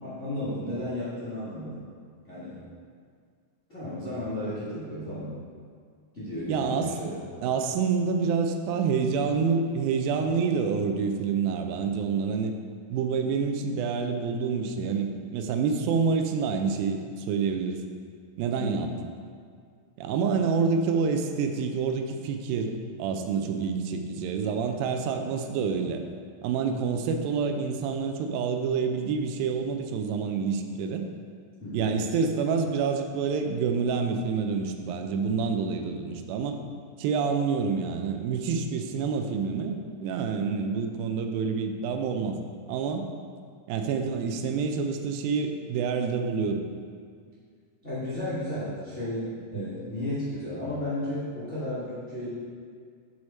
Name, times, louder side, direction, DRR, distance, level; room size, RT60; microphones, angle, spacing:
voice 1, 0.0-1.9 2.3-2.6 3.7-5.3 6.1-7.4 18.5-18.8 23.3-23.6 31.6-31.9 47.8-52.3, left 1 dB, 70° left, -13 dB, 0.6 m, -34 dB
voice 2, 6.5-7.1 7.4-12.5 12.9-17.8 18.4-18.9 20.0-26.0 26.4-31.1 31.7-36.6 37.0-42.4 42.7-43.1 43.7-46.6 49.6-49.7, right 5 dB, 85° right, 6 dB, 2.3 m, -27 dB
6.3 x 4.7 x 4.2 m, 2.1 s
omnidirectional pair, 4.1 m